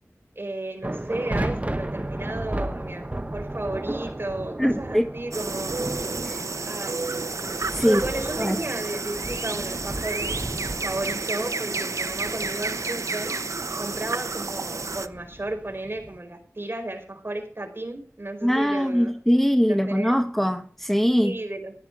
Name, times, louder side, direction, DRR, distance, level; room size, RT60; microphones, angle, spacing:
voice 1, 0.3-5.8 6.6-7.1 7.8-10.5 10.7-19.1 19.7-20.2 21.2-21.7, right 2 dB, 45° right, 4.6 m, -34 dB
sound 1, 0.8-16.2, right 1 dB, 25° right, 1.1 m, -35 dB
voice 2, 4.6-5.1 6.2-6.4 7.7-8.0 8.4-8.6 18.4-21.4, equal, 5° left, 1.3 m, -22 dB
sound 2, 5.3-15.1, right 3 dB, 85° right, 0.7 m, -30 dB
15.5 x 10.5 x 4.8 m
wide cardioid pair, 55°, 5 cm